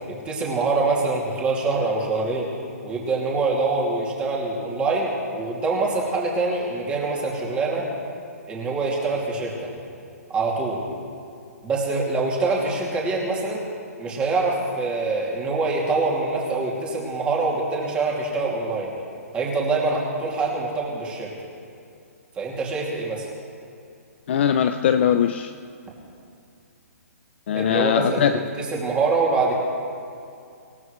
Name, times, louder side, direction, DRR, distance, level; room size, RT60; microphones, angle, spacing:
voice 1, 0.1-2.5 2.8-7.9 8.5-9.7 10.3-10.8 11.6-13.6 14.0-18.9 19.3-21.3 22.4-23.3 27.5-29.5, right 3 dB, 15° right, -3 dB, 2.6 m, -25 dB
voice 2, 24.3-25.5 27.5-28.3, left 9 dB, 45° left, 9 dB, 0.5 m, -20 dB
26.5 x 15.5 x 3.2 m, 2.4 s
hypercardioid pair, 160°, 9 cm